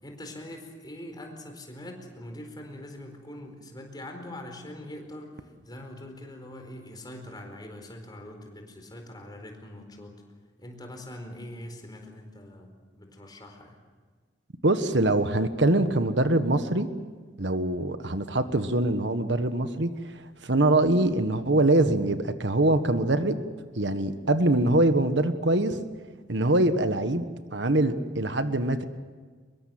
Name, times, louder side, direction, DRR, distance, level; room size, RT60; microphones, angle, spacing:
voice 1, 0.0-10.1 10.6-13.7, left 1 dB, 25° left, 3 dB, 4.4 m, -43 dB
voice 2, 14.6-16.9 17.4-19.9 20.4-23.4 23.7-25.8 26.3-27.2 27.5-28.8, right 2 dB, 70° right, 9 dB, 1.4 m, -23 dB
24.5 x 22.0 x 7.8 m, 1.5 s
head